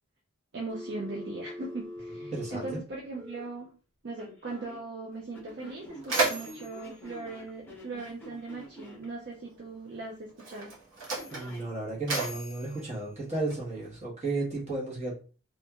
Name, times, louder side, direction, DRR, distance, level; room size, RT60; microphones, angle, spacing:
voice 1, 0.5-3.7 4.0-10.7, right 3 dB, 50° right, -1 dB, 0.5 m, -39 dB
Telephone, 0.7-3.5 4.2-4.8 5.3-9.1 11.1-11.7, left 1 dB, 10° left, 0.7 m, -45 dB
voice 2, 2.3-2.8 11.3-15.1, right 2 dB, 30° right, -5 dB, 1.1 m, -33 dB
Mechanisms, 5.1-5.2 5.6-8.3 9.3-9.5 10.3-13.9, right 3 dB, 70° right, 1.0 m, -34 dB
2.9 x 2.5 x 2.3 m, 0.36 s
head